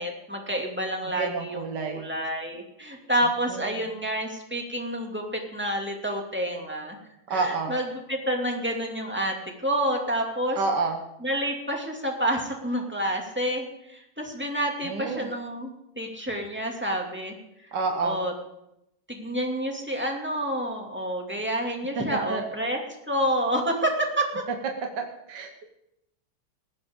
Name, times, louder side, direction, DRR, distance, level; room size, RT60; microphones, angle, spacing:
voice 1, 0.0-7.0 7.3-7.8 8.1-10.6 11.2-17.4 18.0-18.3 19.1-22.8 23.1-24.4, right 1 dB, 5° right, 0 dB, 2.4 m, -29 dB
voice 2, 1.2-2.1 3.5-3.9 7.3-7.7 10.6-11.0 14.8-15.3 17.7-18.2 22.0-22.5 25.0-25.6, right 4 dB, 60° right, 3 dB, 1.7 m, -29 dB
19.5 x 15.5 x 3.8 m, 0.84 s
omnidirectional pair, 2.2 m